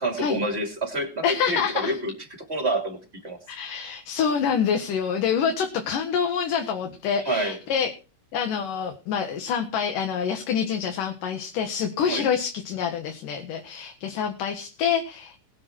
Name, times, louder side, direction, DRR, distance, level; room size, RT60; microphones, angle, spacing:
voice 1, 0.0-2.1 2.5-3.0 3.2-3.4 7.2-7.6 12.0-12.3, right 1 dB, 20° right, 3 dB, 2.6 m, -27 dB
voice 2, 1.2-1.9 3.5-7.9 8.3-15.5, left 7 dB, 80° left, 5 dB, 3.2 m, -26 dB
21.0 x 7.7 x 4.5 m, 0.34 s
omnidirectional pair, 3.7 m